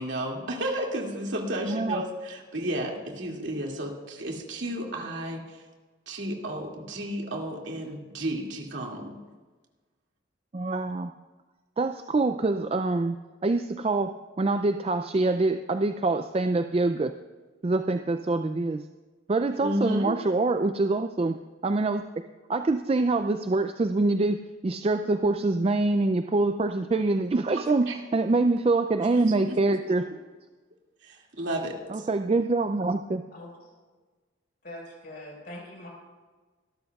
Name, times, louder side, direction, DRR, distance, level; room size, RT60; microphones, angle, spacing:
voice 1, 0.0-5.6 6.1-9.1 19.6-20.1 27.5-27.6 27.9-28.0 29.5-29.6 31.0-32.1, right 1 dB, 70° right, 0 dB, 2.4 m, -32 dB
voice 2, 1.7-2.0 10.5-11.1 11.8-13.2 13.4-17.1 17.6-18.8 19.3-21.3 21.6-22.0 22.5-30.1 31.9-33.2, right 2 dB, 30° right, 8 dB, 0.3 m, -25 dB
voice 3, 33.3-33.7 34.6-35.9, left 1 dB, 50° left, -2 dB, 4.7 m, -43 dB
24.5 x 13.0 x 2.4 m, 1.3 s
head